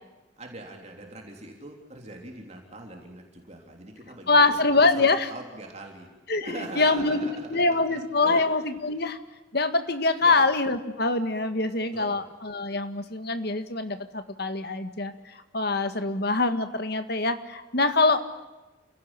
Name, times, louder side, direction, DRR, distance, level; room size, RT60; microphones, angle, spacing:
voice 1, 0.4-4.7 4.9-6.1 6.4-8.4 8.8-9.0 10.2-10.5 11.9-12.2, right 2 dB, 35° right, 1 dB, 3.5 m, -41 dB
voice 2, 4.3-5.3 6.3-9.2 9.5-18.3, left 3 dB, 55° left, 9 dB, 1.8 m, -24 dB
29.0 x 17.5 x 10.0 m, 1.1 s
head